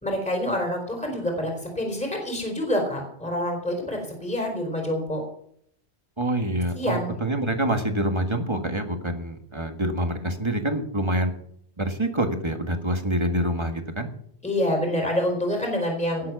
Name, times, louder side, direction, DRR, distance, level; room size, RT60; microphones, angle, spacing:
voice 1, 0.0-5.2 6.7-7.2 14.4-16.3, left 1 dB, 5° left, 1 dB, 3.9 m, -27 dB
voice 2, 6.2-11.3 11.8-14.1, right 1 dB, 25° right, 5 dB, 1.8 m, -26 dB
18.5 x 7.7 x 6.1 m, 0.68 s
omnidirectional pair, 1.1 m